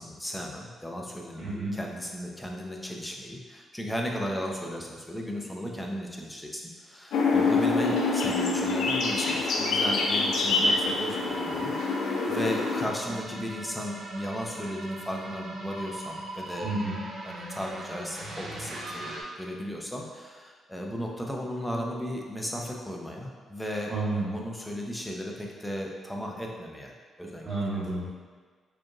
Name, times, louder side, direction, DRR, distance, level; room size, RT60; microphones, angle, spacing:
voice 1, 0.0-16.7 17.2-23.9 24.3-27.5 27.8-27.9, equal, 5° left, 0 dB, 0.6 m, -35 dB
voice 2, 1.4-1.7 16.6-17.0 23.9-24.3 27.4-28.2, right 2 dB, 40° right, -8 dB, 1.5 m, -30 dB
sound 1, 7.1-12.9, left 3 dB, 85° left, 0.5 m, -26 dB
sound 2, 11.1-19.2, right 1 dB, 85° right, 0.7 m, -39 dB
4.8 x 3.0 x 2.4 m, 1.5 s
cardioid pair, 85°, 0 cm